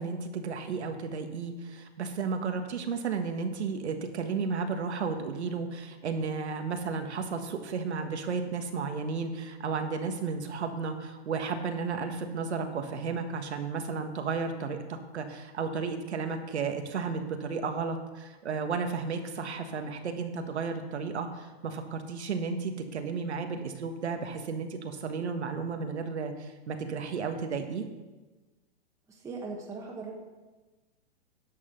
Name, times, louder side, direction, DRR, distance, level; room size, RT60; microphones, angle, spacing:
voice 1, 0.0-27.9, right 5 dB, 90° right, 6 dB, 1.5 m, -33 dB
voice 2, 29.1-30.1, right 4 dB, 10° right, -2 dB, 1.3 m, -39 dB
11.0 x 5.9 x 6.8 m, 1.2 s
hypercardioid pair, 150°, 33 cm